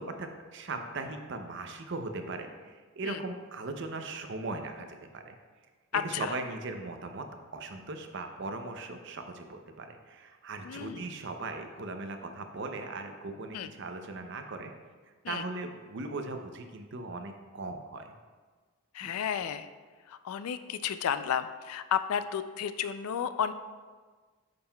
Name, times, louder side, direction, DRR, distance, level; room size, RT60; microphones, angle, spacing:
voice 1, 0.0-5.4 6.0-7.3 7.5-14.7 15.3-18.1 19.0-19.1, right 3 dB, 50° right, 6 dB, 0.5 m, -39 dB
voice 2, 5.9-6.3 10.6-11.1 13.5-13.7 15.2-15.4 18.9-19.7 20.1-23.5, left 8 dB, 75° left, 12 dB, 0.3 m, -32 dB
8.7 x 5.5 x 2.3 m, 1.4 s
head